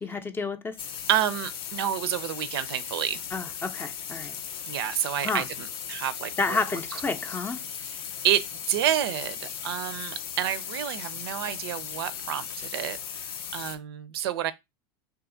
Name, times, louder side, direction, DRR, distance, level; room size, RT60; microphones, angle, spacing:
voice 1, 0.0-0.8 3.3-4.4 5.2-5.5 6.4-7.6, left 4 dB, 15° left, 0.5 m, -30 dB
sound 1, 0.8-13.8, left 8 dB, 80° left, 0.6 m, -37 dB
voice 2, 1.1-3.2 4.7-6.6 7.8-8.0 8.2-14.5, right 11 dB, 80° right, 0.4 m, -29 dB
2.8 x 2.4 x 3.7 m
supercardioid pair, 110°, 13 cm